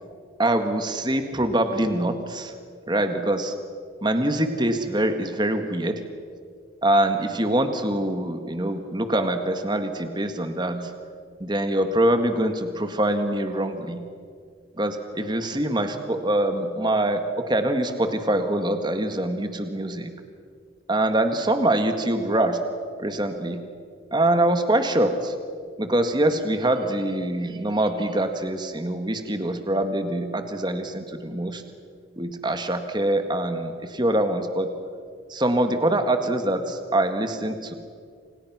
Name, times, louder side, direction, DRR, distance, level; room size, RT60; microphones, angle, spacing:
voice 1, 0.4-2.5 2.9-3.5 4.0-6.0 6.8-10.9 11.4-14.0 14.8-20.1 20.9-22.6 23.0-23.6 24.1-25.3 25.8-31.6 32.2-34.7 35.3-37.7, right 1 dB, 20° right, 7 dB, 1.7 m, -24 dB
29.0 x 27.0 x 6.2 m, 2.1 s
head